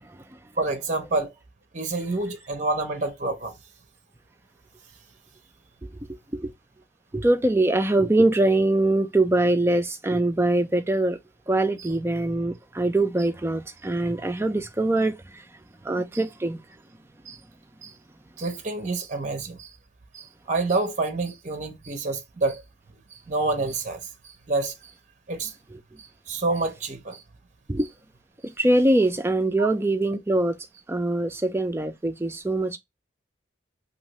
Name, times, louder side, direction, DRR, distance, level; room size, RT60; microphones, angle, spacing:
voice 1, 0.0-0.4 5.8-6.5 7.1-11.2 11.5-16.6 25.7-25.8 27.7-27.9 28.4-30.6 30.9-32.8, right 2 dB, 10° right, 0.3 m, -23 dB
voice 2, 0.6-1.3 1.7-3.6 17.3-17.4 17.8-17.9 18.4-19.7 20.1-22.6 23.1-24.9 25.3-25.5 26.0-27.2 29.6-29.7, right 3 dB, 35° right, 0.7 m, -28 dB
2.7 x 2.5 x 3.0 m
head